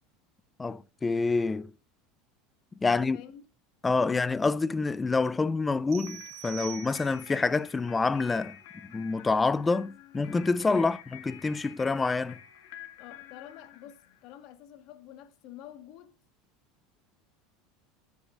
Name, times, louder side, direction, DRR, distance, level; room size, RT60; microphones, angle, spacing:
voice 1, 0.6-1.7 2.8-3.2 3.8-8.6 8.8-12.4, left 3 dB, 15° left, 0.4 m, -27 dB
voice 2, 2.9-3.4 10.6-10.8 13.0-16.1, left 11 dB, 55° left, 1.4 m, -48 dB
sound 1, 5.9-7.4, right 19 dB, 75° right, 2.0 m, -44 dB
sound 2, 6.0-14.4, left 11 dB, 75° left, 1.6 m, -50 dB
13.5 x 7.1 x 2.5 m
supercardioid pair, 135°, 0 cm